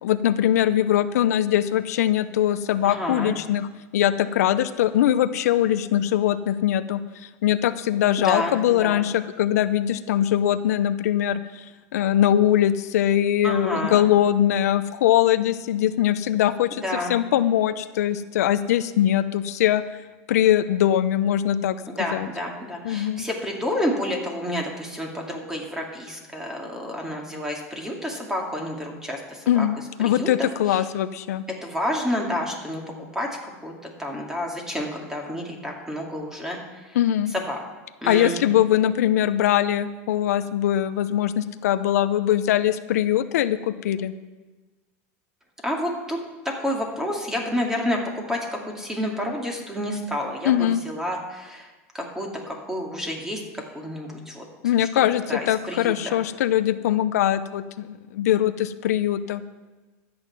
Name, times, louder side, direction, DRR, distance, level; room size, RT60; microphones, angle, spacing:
voice 1, 0.0-7.0 7.4-11.4 11.9-16.8 17.1-19.8 20.3-21.8 22.1-22.3 22.8-23.2 29.5-31.4 36.9-37.3 38.1-44.1 50.4-50.8 54.6-59.4, left 11 dB, 85° left, 12 dB, 0.6 m, -22 dB
voice 2, 2.8-3.4 8.2-9.0 13.4-14.1 16.8-17.2 21.9-29.7 30.0-30.8 31.6-32.8 33.1-33.3 33.6-33.7 34.0-36.6 36.9-37.0 37.3-37.6 38.0-38.3 45.6-46.2 46.6-48.4 48.7-51.7 51.9-53.4 53.7-54.5 54.8-54.9 55.3-56.2, left 1 dB, 5° right, 1 dB, 2.3 m, -29 dB
13.0 x 8.7 x 6.0 m, 1.2 s
supercardioid pair, 135°, 8 cm